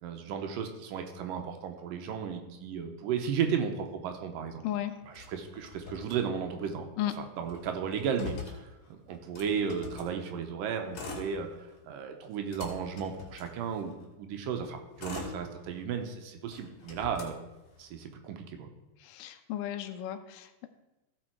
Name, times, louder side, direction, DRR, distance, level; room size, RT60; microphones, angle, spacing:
voice 1, 0.0-4.6 5.1-6.9 7.2-8.7 9.1-11.5 11.8-17.4 17.8-18.7, right 7 dB, 80° right, 5 dB, 2.5 m, -34 dB
voice 2, 4.6-4.9 7.0-7.1 19.0-20.7, left 12 dB, 75° left, 8 dB, 2.2 m, -34 dB
Motor vehicle (road), 5.1-6.7 7.0-7.1 7.4-10.1 10.8-11.8 12.2-14.0 14.6-16.1 16.5-18.0, left 4 dB, 55° left, 3.4 m, -44 dB
16.0 x 5.5 x 4.6 m, 1.0 s
omnidirectional pair, 4.0 m